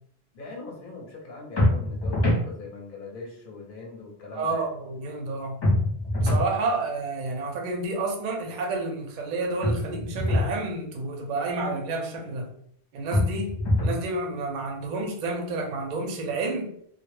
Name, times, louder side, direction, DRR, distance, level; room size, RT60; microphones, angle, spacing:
voice 1, 0.3-4.7, left 3 dB, 60° left, 0 dB, 0.8 m, -41 dB
sound 1, 1.6-2.5 5.6-6.5 9.6-10.5 13.1-14.0, left 1 dB, 35° left, 0.4 m, -23 dB
voice 2, 4.3-5.6 6.2-12.5 12.9-16.7, right 3 dB, 55° right, 2 dB, 0.6 m, -30 dB
2.1 x 2.1 x 3.1 m, 0.65 s
omnidirectional pair, 1.1 m